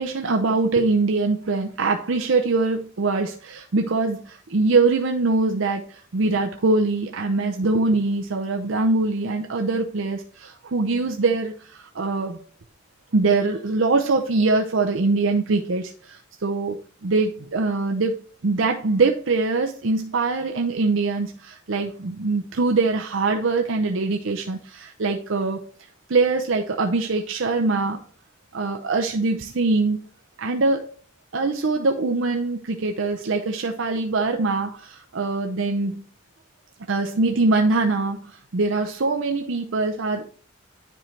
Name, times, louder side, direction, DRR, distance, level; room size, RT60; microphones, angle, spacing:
voice 1, 0.0-12.4 13.1-16.8 17.0-25.6 26.1-28.0 28.5-30.0 30.4-30.9 31.3-36.0 36.9-40.3, right 3 dB, 90° right, 4 dB, 0.7 m, -23 dB
10.0 x 4.4 x 3.3 m, 0.42 s
head